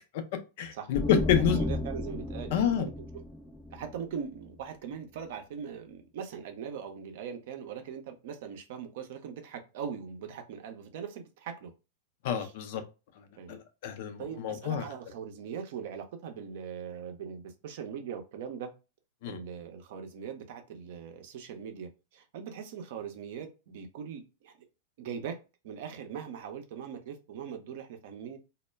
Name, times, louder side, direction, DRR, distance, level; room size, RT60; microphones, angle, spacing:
voice 1, 0.6-1.6 2.5-2.9 12.2-12.8 13.5-14.9 19.2-19.4, left 9 dB, 60° left, 0.5 m, -28 dB
sound 1, 0.9-4.6, left 1 dB, 5° left, 0.5 m, -34 dB
voice 2, 1.3-2.9 3.7-11.7 12.4-12.5 13.4-13.6 14.2-18.7 19.3-24.5 25.0-25.4 25.6-28.4, right 7 dB, 60° right, 0.5 m, -41 dB
2.1 x 2.0 x 3.3 m
hypercardioid pair, 100°, 0 cm